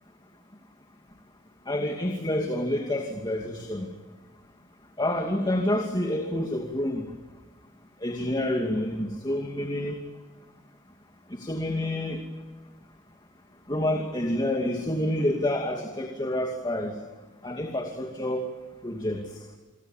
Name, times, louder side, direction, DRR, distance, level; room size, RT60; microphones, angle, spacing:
voice 1, 1.7-3.9 5.0-7.1 8.0-10.0 11.4-12.2 13.7-16.9 17.4-18.4 18.8-19.2, left 1 dB, 20° left, 3 dB, 2.6 m, -28 dB
28.5 x 24.0 x 7.4 m, 1.2 s
head